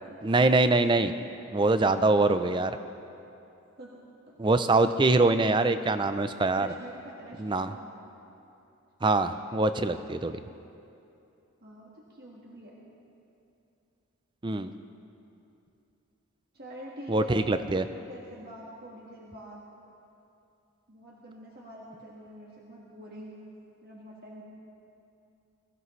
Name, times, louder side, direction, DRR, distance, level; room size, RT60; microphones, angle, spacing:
voice 1, 0.2-1.1 1.5-2.8 4.4-6.7 7.4-7.7 9.0-10.4 14.4-14.7 17.1-17.8, right 2 dB, 20° right, 10 dB, 0.4 m, -24 dB
voice 2, 6.6-7.9 11.6-12.8 16.5-19.7 20.9-23.4 23.8-24.4, right 1 dB, 45° right, -4 dB, 1.5 m, -46 dB
22.5 x 15.5 x 3.2 m, 2.7 s
head